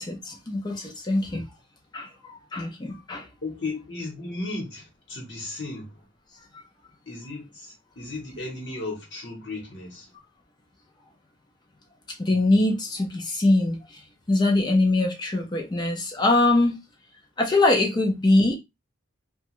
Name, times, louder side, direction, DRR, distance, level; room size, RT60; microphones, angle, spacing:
voice 1, 0.0-1.4 1.9-3.3 12.2-14.0 14.3-16.8 17.4-18.5, left 2 dB, 20° left, 0.4 m, -23 dB
voice 2, 3.4-6.1 7.1-10.1, left 2 dB, 60° left, 1.0 m, -35 dB
2.9 x 2.2 x 3.0 m
head